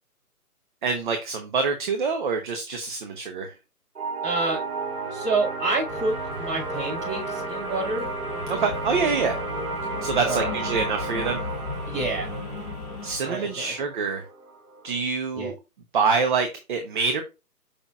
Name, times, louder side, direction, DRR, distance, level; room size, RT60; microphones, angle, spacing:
voice 1, 0.8-3.5 8.5-9.4 10.0-11.4 13.0-14.2 14.8-15.6 15.9-17.2, right 5 dB, 30° right, 1.0 m, -26 dB
sound 1, 3.9-15.0, right 3 dB, 65° right, 2.4 m, -33 dB
voice 2, 4.2-4.6 5.1-8.1 10.2-10.6 11.9-12.3 13.2-13.7 15.3-15.5, right 3 dB, 15° right, 4.1 m, -28 dB
sound 2, 5.9-13.2, left 4 dB, 35° left, 2.0 m, -36 dB
6.9 x 5.8 x 2.4 m
figure-of-eight pair, 145°, 46 cm